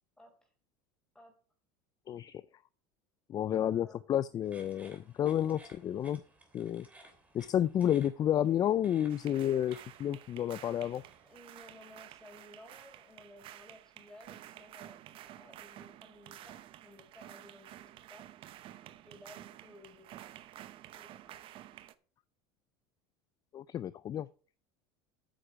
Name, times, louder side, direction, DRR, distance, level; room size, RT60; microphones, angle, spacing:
voice 1, 0.2-0.5 1.1-1.3 3.6-4.0 11.2-18.4 19.0-20.3 20.9-21.6, left 1 dB, 5° left, 2 dB, 4.5 m, -57 dB
voice 2, 2.1-2.4 3.3-6.2 6.5-6.9 7.3-11.0 23.5-24.3, left 10 dB, 35° left, 17 dB, 0.4 m, -31 dB
sound 1, 4.4-11.4, right 2 dB, 10° right, 3.2 m, -59 dB
sound 2, 9.1-21.9, right 13 dB, 50° right, 0.8 m, -51 dB
8.9 x 6.7 x 6.1 m, 0.41 s
supercardioid pair, 110°, 11 cm